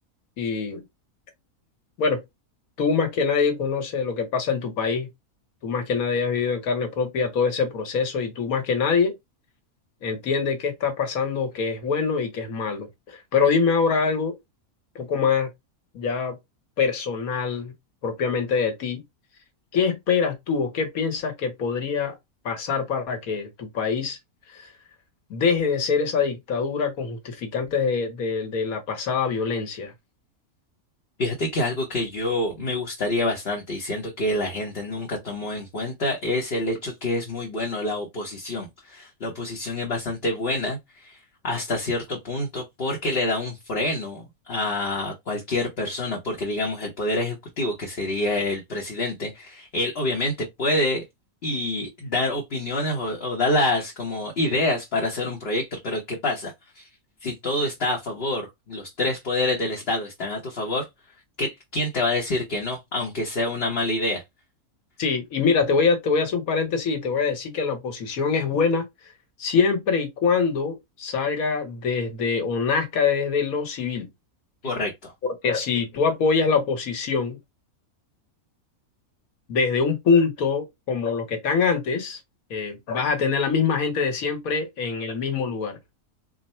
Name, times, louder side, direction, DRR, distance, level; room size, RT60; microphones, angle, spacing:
voice 1, 0.4-0.8 2.0-2.2 2.8-5.1 5.6-9.1 10.0-14.3 14.9-15.5 15.9-16.4 16.8-17.7 18.0-19.0 19.7-22.1 22.4-24.2 24.5-24.6 25.3-29.9 65.0-68.8 69.4-74.1 75.4-77.4 79.5-82.2 82.5-85.8, left 5 dB, 75° left, 1.5 m, -24 dB
voice 2, 31.2-41.2 41.4-51.0 51.4-56.8 57.2-60.9 61.4-64.2 74.6-75.1, left 2 dB, 50° left, 1.0 m, -27 dB
3.6 x 2.2 x 4.2 m
omnidirectional pair, 1.5 m